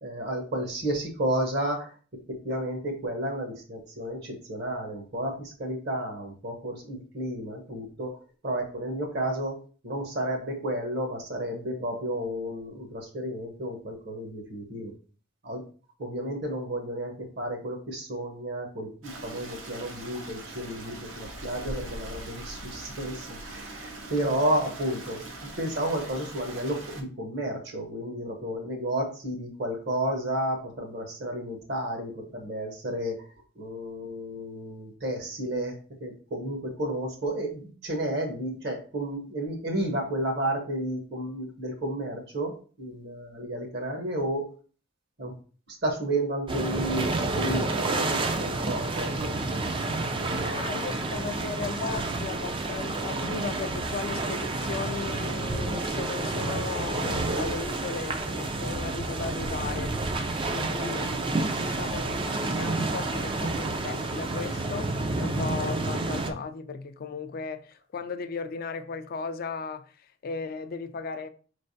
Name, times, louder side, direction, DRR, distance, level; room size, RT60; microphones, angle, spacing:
voice 1, 0.0-8.1 8.4-9.6 9.8-14.9 15.4-15.6 16.0-44.5 45.2-45.3 45.7-49.4 50.2-50.7 60.7-60.9, right 1 dB, 55° right, 1.0 m, -32 dB
Stream, 19.0-27.0, right 2 dB, 80° right, 0.9 m, -41 dB
sound 1, 46.5-66.3, right 2 dB, 25° right, 0.4 m, -29 dB
voice 2, 50.5-60.0 60.5-71.3, left 5 dB, 50° left, 0.4 m, -36 dB
4.5 x 3.2 x 2.6 m
head